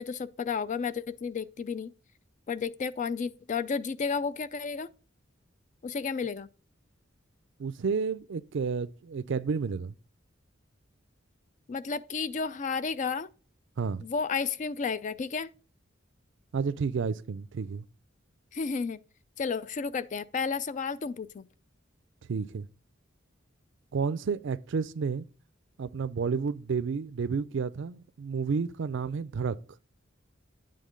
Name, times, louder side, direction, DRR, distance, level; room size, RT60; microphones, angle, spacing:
voice 1, 0.0-1.9 2.5-4.9 5.8-6.5 11.7-13.3 14.0-15.5 18.5-19.0 19.4-21.5, left 5 dB, 40° left, 0.4 m, -32 dB
voice 2, 7.6-9.9 13.8-14.0 16.5-17.8 22.3-22.7 23.9-25.3 25.8-29.6, right 5 dB, 65° right, 0.4 m, -31 dB
9.4 x 3.8 x 5.1 m
head